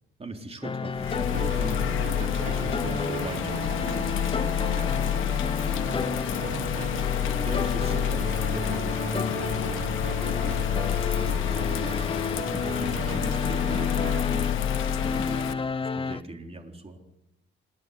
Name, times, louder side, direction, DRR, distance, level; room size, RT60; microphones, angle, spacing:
voice 1, 0.2-17.0, right 2 dB, 30° right, 3 dB, 4.0 m, -40 dB
sound 1, 0.6-16.2, left 5 dB, 25° left, 0.7 m, -31 dB
Bird vocalization bird call bird song / Rain, 0.9-15.5, left 11 dB, 85° left, 1.3 m, -29 dB
sound 2, 1.3-14.2, right 7 dB, 75° right, 2.6 m, -38 dB
27.5 x 11.0 x 9.6 m, 0.90 s
cardioid pair, 90°, 20 cm